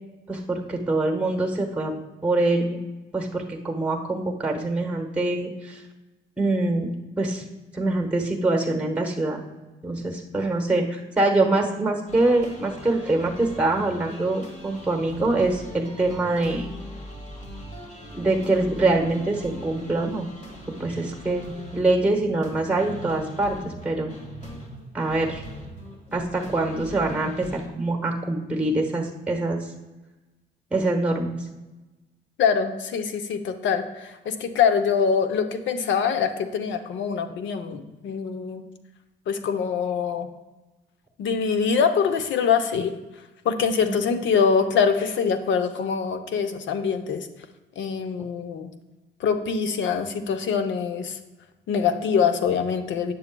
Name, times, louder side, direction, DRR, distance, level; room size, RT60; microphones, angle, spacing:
voice 1, 0.3-1.9 2.2-2.8 3.1-5.8 6.4-6.9 7.2-7.4 7.7-9.4 9.8-16.7 18.1-20.3 20.8-24.2 24.9-25.4 26.1-29.7 30.7-31.5 43.9-44.0, right 2 dB, 5° right, 3 dB, 1.0 m, -24 dB
sound 1, 12.1-27.7, equal, 35° left, 1.7 m, -41 dB
voice 2, 32.4-38.6 39.3-40.3 41.2-42.9 43.4-47.3 47.8-48.7 49.2-51.2 51.7-53.1, left 6 dB, 70° left, 9 dB, 0.7 m, -24 dB
9.2 x 7.0 x 2.2 m, 1.1 s
cardioid pair, 90°, 20 cm